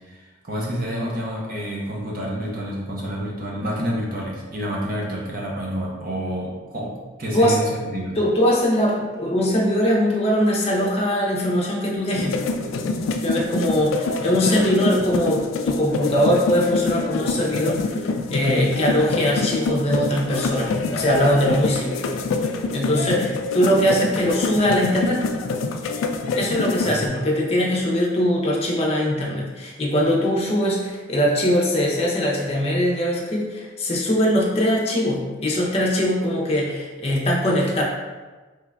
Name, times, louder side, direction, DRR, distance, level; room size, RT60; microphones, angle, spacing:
voice 1, 0.1-6.9 7.2-8.2 26.8-27.1, equal, 45° right, -3 dB, 0.7 m, -28 dB
voice 2, 8.2-12.4 13.2-22.1 22.7-25.2 26.3-37.8, equal, 30° left, -3 dB, 0.6 m, -21 dB
sound 1, 12.1-27.1, left 3 dB, 90° left, 0.3 m, -26 dB
3.6 x 3.1 x 2.2 m, 1.3 s
head